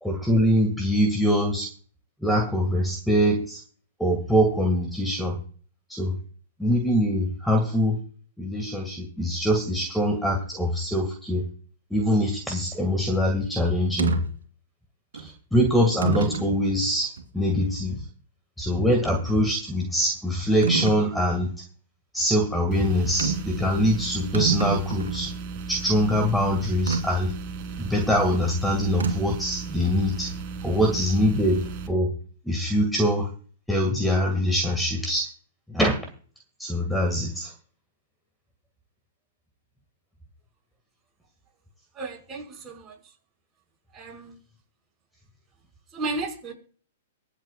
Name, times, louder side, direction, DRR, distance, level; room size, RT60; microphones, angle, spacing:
voice 1, 0.0-1.7 2.2-3.6 4.0-5.4 5.9-6.1 6.6-8.0 8.4-11.4 11.9-14.2 15.1-18.0 18.6-21.5 22.1-25.3 25.7-27.3 27.8-30.3 30.6-32.1 32.5-33.3 33.7-35.3 35.7-35.9 36.6-37.5, equal, 5° left, 2 dB, 2.0 m, -23 dB
sound 1, 14.0-14.2 15.1-15.3 16.0-16.5 17.2-17.3 20.6-21.0 23.2-23.5 23.9-24.0 24.2-25.3 26.9-27.0 29.0-29.4, right 5 dB, 75° right, 2.4 m, -26 dB
sound 2, 22.7-31.9, right 5 dB, 40° right, 2.2 m, -36 dB
voice 2, 42.0-42.9 43.9-44.4 45.9-46.5, right 3 dB, 20° right, 0 dB, 5.4 m, -33 dB
24.5 x 8.2 x 2.4 m, 0.42 s
hypercardioid pair, 115°, 0 cm